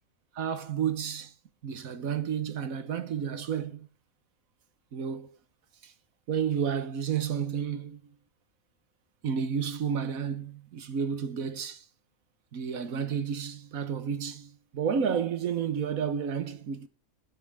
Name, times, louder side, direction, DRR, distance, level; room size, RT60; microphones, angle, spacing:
voice 1, 0.3-1.3 1.6-3.9 4.9-5.4 5.8-5.9 6.3-8.1 9.2-11.8 12.5-16.9, right 7 dB, 80° right, 1.5 m, -31 dB
8.6 x 5.7 x 7.3 m
omnidirectional pair, 1.4 m